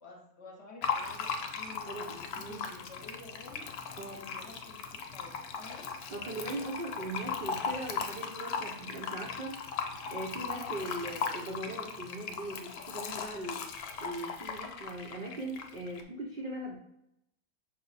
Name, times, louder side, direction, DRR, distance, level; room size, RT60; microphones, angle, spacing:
voice 1, 0.0-3.7 4.1-5.9, left 2 dB, 50° left, -1 dB, 1.0 m, -51 dB
Fill (with liquid), 0.8-16.0, left 6 dB, 80° left, 1.1 m, -38 dB
voice 2, 1.9-2.6 4.0-4.3 6.1-9.6 10.1-13.6 14.0-16.8, right 1 dB, 65° right, -2 dB, 0.5 m, -40 dB
5.6 x 2.1 x 3.9 m, 0.82 s
omnidirectional pair, 1.6 m